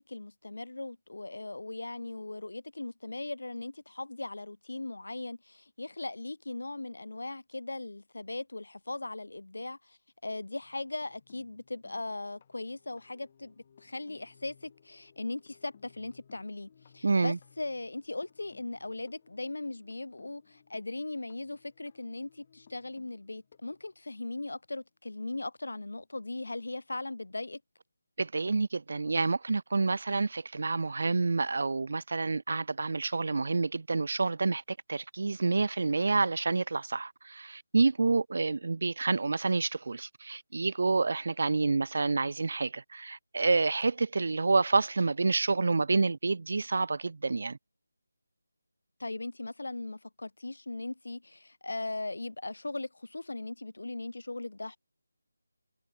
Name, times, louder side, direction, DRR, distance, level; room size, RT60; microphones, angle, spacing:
voice 1, 0.0-27.6 49.0-54.8, left 2 dB, 75° left, 2.1 m, -39 dB
sound 1, 10.6-24.6 25.9-26.0 26.3-26.5, left 7 dB, 20° left, 2.3 m, -62 dB
voice 2, 17.0-17.4 28.2-47.6, right 3 dB, 40° right, 0.6 m, -28 dB
figure-of-eight pair, 180°, 0 cm